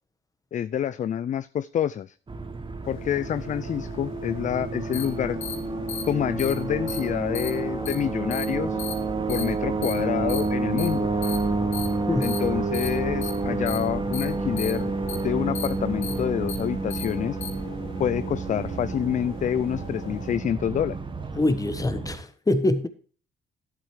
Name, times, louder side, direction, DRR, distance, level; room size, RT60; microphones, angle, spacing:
voice 1, 0.5-2.1 2.9-5.4 6.0-8.8 9.3-11.1 12.2-14.9 15.2-17.4 18.0-21.0, left 9 dB, 40° left, 0.4 m, -27 dB
sound 1, 2.3-22.2, right 3 dB, 25° right, 1.3 m, -29 dB
sound 2, 2.8-20.4, left 6 dB, 90° left, 1.6 m, -44 dB
sound 3, 4.9-5.0 5.4-5.5 5.9-6.0 6.4-6.5 6.9-7.0 7.3-7.5 7.9-8.0 8.3-8.4 8.8-8.9 9.3-9.4 9.8-9.9 10.3-10.4 10.8-10.9 11.2-11.4 11.7-11.9 12.2-12.4 12.7-12.9 13.2-13.3 13.7-13.8 14.1-14.2 14.6-14.7 15.1-15.2 15.5-15.7 16.0-16.1 16.5-16.6 16.9-17.0 17.4-17.5, left 7 dB, 70° left, 2.9 m, -34 dB
voice 2, 21.3-22.9, left 2 dB, 15° left, 1.2 m, -24 dB
11.5 x 8.3 x 3.1 m
cardioid pair, 90°, 20 cm